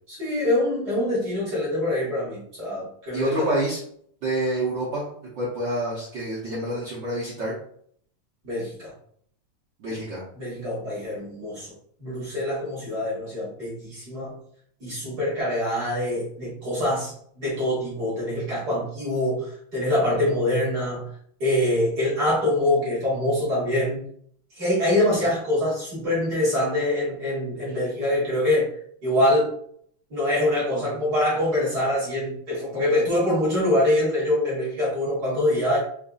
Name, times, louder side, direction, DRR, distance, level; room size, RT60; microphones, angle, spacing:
voice 1, 0.1-3.5 8.4-8.9 10.4-11.7 12.0-14.4 14.8-21.0 21.4-24.1 24.5-28.7 29.0-29.5 30.1-35.8, left 1 dB, 40° right, -8 dB, 1.8 m, -24 dB
voice 2, 3.1-3.8 4.2-5.1 5.3-7.6 9.8-10.2, right 1 dB, 90° right, -7 dB, 0.9 m, -27 dB
5.2 x 2.6 x 2.4 m, 0.63 s
omnidirectional pair, 3.4 m